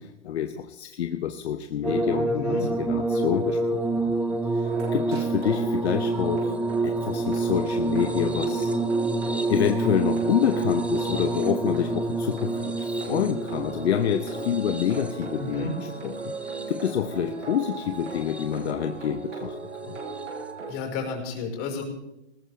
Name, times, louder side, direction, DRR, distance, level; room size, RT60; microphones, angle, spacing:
voice 1, 0.0-4.2 4.5-6.5 6.8-8.7 9.5-16.3 16.7-19.6 19.8-20.0, left 9 dB, 65° left, 8 dB, 1.0 m, -28 dB
sound 1, 1.8-17.1 18.0-18.7 20.1-20.2, right 2 dB, 5° right, 0.7 m, -28 dB
voice 2, 2.3-2.7 15.3-15.7 20.7-21.8, left 4 dB, 35° left, 0 dB, 5.0 m, -32 dB
sound 2, 4.6-20.7, right 3 dB, 80° right, 6.3 m, -37 dB
20.0 x 16.5 x 3.4 m, 0.90 s
hypercardioid pair, 125°, 35 cm